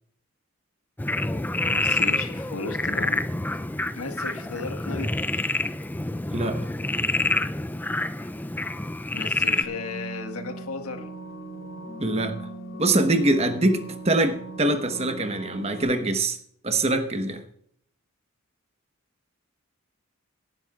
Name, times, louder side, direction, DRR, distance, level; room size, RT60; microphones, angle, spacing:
Frog, 1.0-9.6, left 2 dB, 10° left, 0.3 m, -27 dB
voice 1, 1.6-3.2 3.9-5.1 9.1-11.1, left 3 dB, 85° left, 6 dB, 1.6 m, -35 dB
sound 1, 9.6-15.8, right 2 dB, 55° left, 4.0 m, -39 dB
voice 2, 12.0-12.4 12.8-16.4 16.6-17.4, right 2 dB, 30° right, 7 dB, 1.0 m, -23 dB
18.5 x 10.5 x 2.4 m, 0.66 s
head